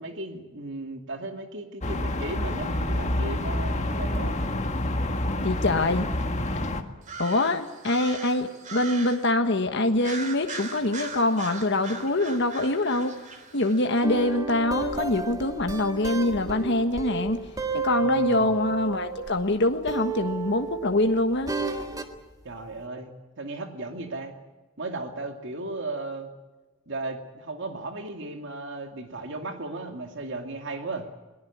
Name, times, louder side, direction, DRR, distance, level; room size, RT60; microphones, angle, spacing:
voice 1, 0.0-4.4 18.0-18.5 22.4-23.1 23.4-24.3 24.8-26.3 26.9-31.1, right 2 dB, 60° right, 5 dB, 2.5 m, -35 dB
sound 1, 1.8-6.8, left 1 dB, 35° left, 1.7 m, -28 dB
voice 2, 5.4-6.1 7.2-13.1 13.5-17.4 17.7-21.5, left 2 dB, 55° left, 6 dB, 1.5 m, -24 dB
sound 2, 7.0-9.3 10.0-14.0, right 4 dB, 35° right, 2.9 m, -39 dB
sound 3, 14.0-19.5 19.9-22.2, right 4 dB, 15° right, 1.7 m, -32 dB
21.5 x 19.5 x 8.6 m, 1.2 s
head